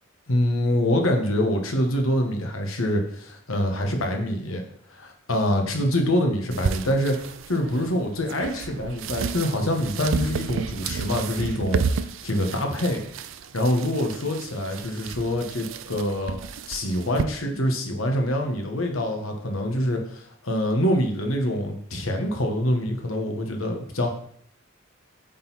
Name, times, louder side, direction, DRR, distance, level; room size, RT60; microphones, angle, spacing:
voice 1, 0.3-4.6 4.9-7.2 7.5-13.0 13.5-24.1, left 1 dB, 90° left, 3 dB, 1.3 m, -25 dB
sound 1, 6.5-17.2, right 5 dB, 75° right, 0.4 m, -32 dB
8.6 x 4.1 x 4.1 m, 0.63 s
head